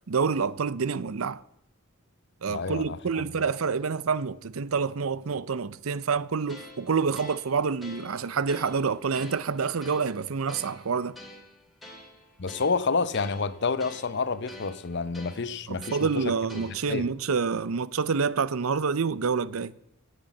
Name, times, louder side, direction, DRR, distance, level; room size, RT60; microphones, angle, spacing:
voice 1, 0.1-1.4 2.4-11.2 15.7-19.7, right 5 dB, 85° right, 0.6 m, -27 dB
voice 2, 2.5-3.3 12.4-17.1, left 4 dB, 55° left, 0.8 m, -29 dB
sound 1, 6.5-17.1, left 1 dB, ahead, 2.8 m, -48 dB
17.5 x 8.1 x 7.1 m
head